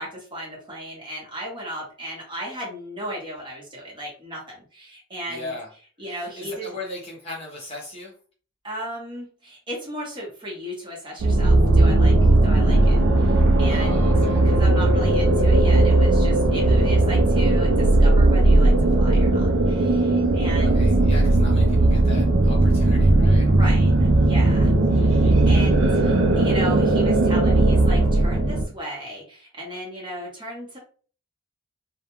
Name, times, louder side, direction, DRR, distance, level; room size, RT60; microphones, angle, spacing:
voice 1, 0.0-5.5 6.0-6.7 8.6-14.1 14.4-20.8 23.5-25.1 25.5-30.8, equal, 20° right, -4 dB, 0.9 m, -36 dB
voice 2, 5.3-5.7 6.1-8.1 13.7-14.4 20.5-23.5 24.9-25.4, left 1 dB, 30° left, -3 dB, 0.7 m, -37 dB
sound 1, 11.2-28.6, right 2 dB, 70° right, 0.4 m, -17 dB
2.3 x 2.2 x 3.0 m, 0.41 s
head